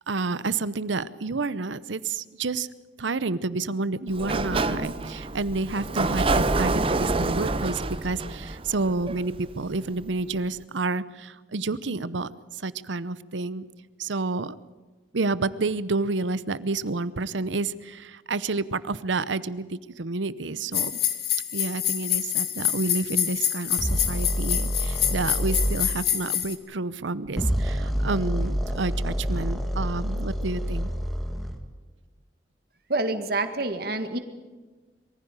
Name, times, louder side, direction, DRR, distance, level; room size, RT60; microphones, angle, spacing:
voice 1, 0.1-2.7 3.0-13.7 14.0-14.6 15.1-20.9 21.5-30.9, right 3 dB, 85° right, 17 dB, 0.8 m, -29 dB
Sliding door, 4.1-9.8, right 2 dB, 30° right, 0.7 m, -27 dB
sound 1, 20.7-26.5, left 11 dB, 55° left, 1.9 m, -27 dB
sound 2, 23.8-25.8 27.3-31.6, equal, ahead, 1.9 m, -27 dB
voice 2, 32.9-34.2, right 2 dB, 55° right, 9 dB, 1.8 m, -27 dB
22.5 x 15.0 x 9.0 m, 1.3 s
head